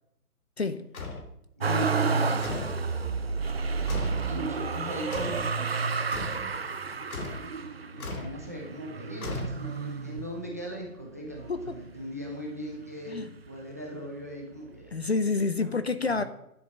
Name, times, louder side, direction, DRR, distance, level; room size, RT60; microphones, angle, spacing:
voice 1, 0.6-0.9 11.5-11.8 13.1-13.3 14.9-16.2, left 3 dB, 45° left, 0.6 m, -28 dB
sound 1, 0.9-1.3 2.4-2.8 3.9-4.3 5.1-5.5 6.1-6.4 7.1-7.5 8.0-8.4 9.2-9.9, left 2 dB, 65° left, 3.2 m, -36 dB
voice 2, 1.6-2.4 4.3-5.5 6.2-6.5 7.9-15.2 15.6-16.2, equal, 10° right, 0.8 m, -39 dB
Motor vehicle (road), 1.6-10.7 11.3-12.1 12.4-13.5 14.5-14.6, right 4 dB, 40° right, 0.7 m, -31 dB
10.5 x 8.3 x 6.2 m
hypercardioid pair, 175°, 46 cm